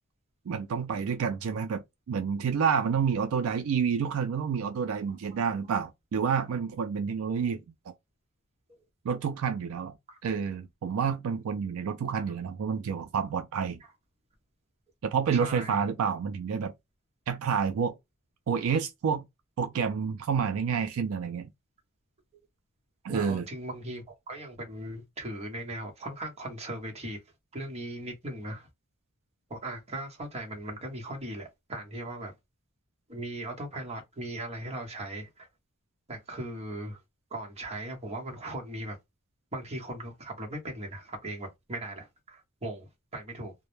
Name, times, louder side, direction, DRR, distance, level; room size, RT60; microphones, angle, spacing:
voice 1, 0.5-7.9 9.0-9.9 10.2-13.8 15.0-16.7 17.3-18.0 18.5-19.2 19.6-21.5 23.0-23.4, right 6 dB, 75° right, 0.4 m, -29 dB
voice 2, 15.3-15.8 23.1-27.2 27.5-28.7 29.5-32.3 33.1-35.5 36.1-37.0 37.3-39.0 39.5-43.5, right 1 dB, 30° right, 0.9 m, -38 dB
2.1 x 2.1 x 3.0 m
head